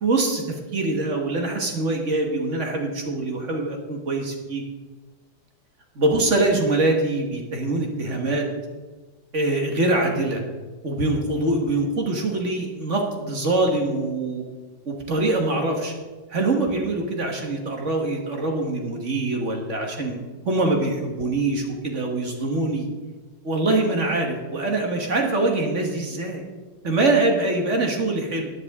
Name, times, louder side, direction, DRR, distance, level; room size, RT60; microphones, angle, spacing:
voice 1, 0.0-4.6 5.9-8.5 9.3-10.4 10.8-14.4 14.8-15.9 16.3-20.2 20.4-22.9 23.4-26.4 26.8-28.5, right 2 dB, 40° right, 2 dB, 1.7 m, -24 dB
13.0 x 10.0 x 3.7 m, 1.3 s
omnidirectional pair, 2.1 m